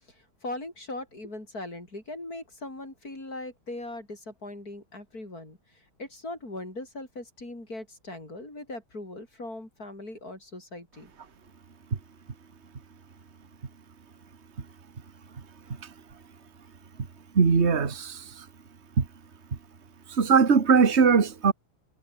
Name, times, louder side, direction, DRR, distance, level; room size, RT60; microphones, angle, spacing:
voice 1, 0.1-11.1, left 2 dB, 45° left, 8.3 m, -40 dB
voice 2, 17.4-18.2 19.0-19.1 20.2-21.5, right 5 dB, 35° right, 2.0 m, -20 dB
omnidirectional pair, 2.1 m